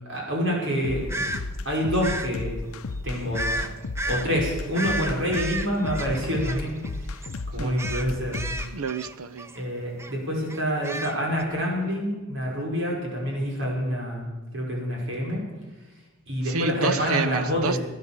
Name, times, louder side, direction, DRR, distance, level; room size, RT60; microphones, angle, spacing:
voice 1, 0.1-1.3 1.7-2.6 3.0-3.6 4.0-7.1 7.5-8.5 9.5-15.4 16.3-17.8, equal, 60° right, 5.5 m, -27 dB
sound 1, 0.8-8.7, left 3 dB, 90° left, 0.7 m, -33 dB
sound 2, 1.1-1.4 2.0-2.3 3.3-3.7 4.0-4.3 4.7-7.0 7.2-7.4 7.8-9.6 10.0-10.1 10.5-11.4, right 1 dB, 10° right, 0.6 m, -32 dB
voice 2, 8.6-9.6 16.4-17.8, right 4 dB, 85° right, 0.8 m, -28 dB
17.0 x 10.5 x 7.3 m
head